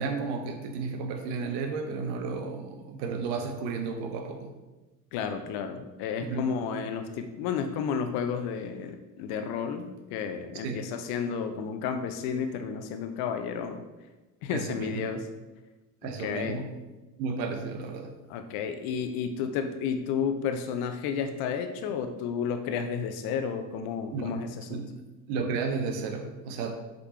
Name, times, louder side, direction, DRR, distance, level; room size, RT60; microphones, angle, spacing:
voice 1, 0.0-4.6 6.2-6.5 10.6-10.9 14.5-15.1 16.0-16.7 17.2-18.2 24.1-24.4 24.7-25.0 25.3-26.8, right 4 dB, 55° right, 5 dB, 1.0 m, -33 dB
voice 2, 5.1-13.8 14.4-15.2 16.2-16.6 18.3-24.8, left 6 dB, 50° left, 7 dB, 0.8 m, -32 dB
8.0 x 5.3 x 3.0 m, 1.1 s
figure-of-eight pair, 60°, 48 cm